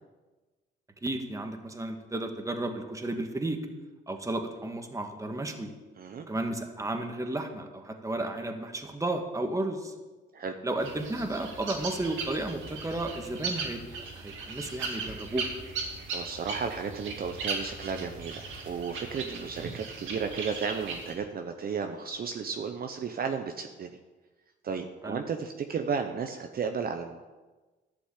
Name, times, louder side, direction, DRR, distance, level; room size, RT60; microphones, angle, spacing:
voice 1, 1.0-3.6 4.1-5.7 6.3-9.9 10.6-13.8 14.2-15.5 19.2-19.5 25.0-25.2, right 2 dB, 15° right, 5 dB, 1.6 m, -33 dB
sound 1, 10.8-21.1, right 4 dB, 80° right, 2.4 m, -38 dB
voice 2, 16.1-24.0 24.6-27.2, right 6 dB, 50° right, 5 dB, 0.9 m, -34 dB
11.5 x 6.2 x 8.2 m, 1.2 s
cardioid pair, 90°, 20 cm